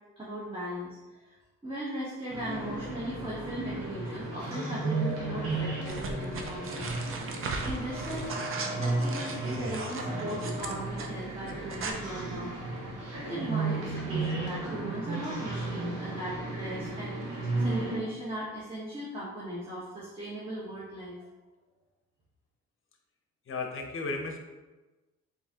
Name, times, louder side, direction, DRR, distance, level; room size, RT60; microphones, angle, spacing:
voice 1, 0.2-1.4 1.6-6.9 7.6-12.5 13.1-21.2, right 1 dB, 15° right, -8 dB, 1.1 m, -38 dB
sound 1, 2.3-18.0, right 2 dB, 70° right, 1.2 m, -34 dB
sound 2, 5.9-11.1 11.5-11.9, right 4 dB, 45° right, 0.6 m, -38 dB
voice 2, 23.5-24.4, left 3 dB, 45° left, 4 dB, 0.8 m, -34 dB
4.1 x 2.8 x 3.6 m, 1.2 s
cardioid pair, 90°, 30 cm